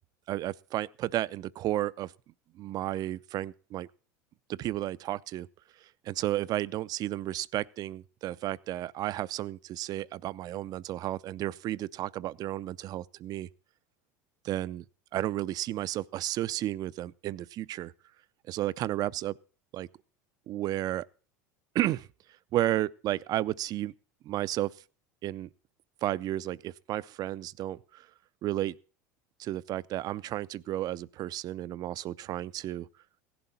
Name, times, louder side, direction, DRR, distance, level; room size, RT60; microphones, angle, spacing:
voice 1, 0.3-2.1 2.6-3.9 4.5-5.5 6.1-13.5 14.4-14.8 15.1-17.9 18.5-19.4 19.7-19.9 20.5-21.1 21.7-22.1 22.5-23.9 24.2-24.7 25.2-25.5 26.0-28.1 28.4-28.8 29.4-32.9, right 14 dB, 45° right, 0.5 m, -32 dB
16.5 x 11.0 x 4.2 m
supercardioid pair, 100°, 9 cm